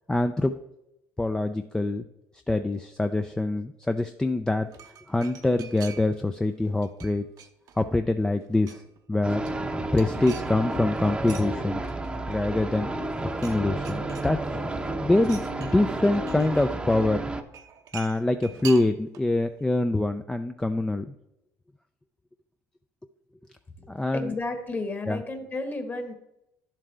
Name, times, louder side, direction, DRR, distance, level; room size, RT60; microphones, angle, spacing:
voice 1, 0.1-0.5 1.2-2.1 2.5-4.7 5.1-7.3 7.8-8.8 9.1-9.4 9.9-11.8 12.3-12.9 13.4-14.7 15.0-17.2 17.9-21.1 23.9-24.3 25.1-25.2, left 2 dB, 10° left, 7 dB, 0.4 m, -25 dB
sound 1, 4.5-6.3 6.6-8.0 8.3-9.0 9.3-11.5 11.8-12.7 13.0-13.6 13.8-14.7 15.2-16.7 17.5-19.3 19.6-19.7, right 8 dB, 65° right, 0.8 m, -45 dB
sound 2, 9.2-17.4, right 2 dB, 15° right, 0.8 m, -31 dB
voice 2, 23.8-26.1, left 2 dB, 30° left, 6 dB, 1.5 m, -33 dB
11.0 x 7.4 x 3.4 m, 0.86 s
supercardioid pair, 100°, 7 cm